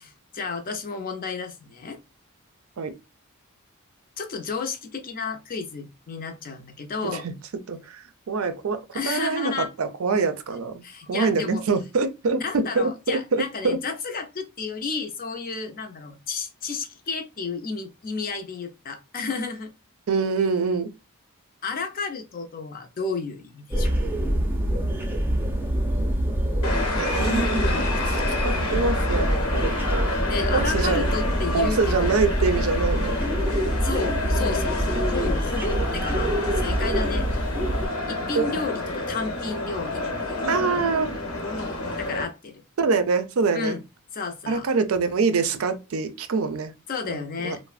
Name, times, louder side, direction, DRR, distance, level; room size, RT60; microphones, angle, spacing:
voice 1, 0.0-2.0 4.2-7.3 8.9-9.7 10.8-11.6 12.4-19.7 21.6-23.9 30.3-32.2 33.8-37.3 38.1-40.9 42.0-42.6 43.5-43.8 44.1-44.7 46.9-47.6, left 4 dB, 40° left, 0.5 m, -32 dB
voice 2, 7.0-7.4 7.7-13.8 20.1-20.9 27.0-28.2 28.4-30.2 30.5-31.0 31.5-33.2 38.3-38.5 40.5-41.1 42.8-43.8 44.5-46.7 47.0-47.6, right 4 dB, 70° right, 0.5 m, -25 dB
sound 1, 23.7-37.9, right 1 dB, 10° right, 0.4 m, -25 dB
sound 2, 26.6-42.2, left 2 dB, 70° left, 0.8 m, -29 dB
3.1 x 2.1 x 2.3 m
head